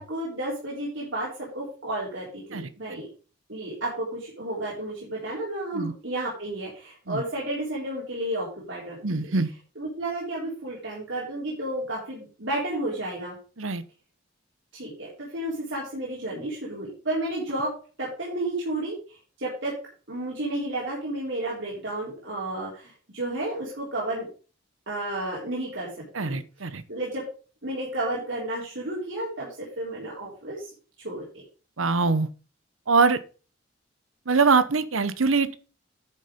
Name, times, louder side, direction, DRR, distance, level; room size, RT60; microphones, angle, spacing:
voice 1, 0.0-3.1 3.5-9.3 9.8-13.4 14.7-17.7 18.0-19.7 20.1-24.3 24.9-25.9 26.2-27.2 27.6-30.7 31.0-31.2, right 1 dB, 65° right, -5 dB, 4.0 m, -32 dB
voice 2, 9.0-9.5 13.6-13.8 26.1-26.8 31.8-32.3 32.9-33.2 34.3-35.6, right 4 dB, 90° right, 14 dB, 0.9 m, -23 dB
10.0 x 6.6 x 5.2 m, 0.37 s
head